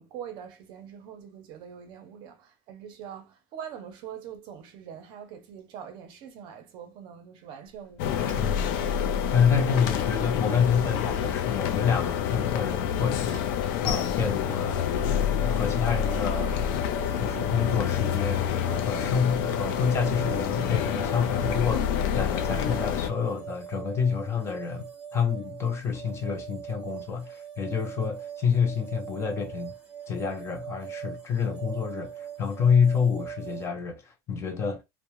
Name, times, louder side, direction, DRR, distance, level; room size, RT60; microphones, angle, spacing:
voice 1, 0.0-8.8, right 8 dB, 50° right, 0.6 m, -43 dB
Sliding door, 7.7-12.0 12.3-17.0, left 2 dB, 65° left, 1.1 m, -47 dB
sound 1, 8.0-23.1, left 9 dB, 90° left, 0.4 m, -28 dB
voice 2, 9.3-13.4 13.8-18.5 18.8-29.7 30.1-34.8, left 6 dB, 25° left, 0.4 m, -28 dB
sound 2, 15.1-33.7, right 9 dB, 15° right, 0.7 m, -41 dB
2.3 x 2.0 x 2.9 m
cardioid pair, 165°, 10 cm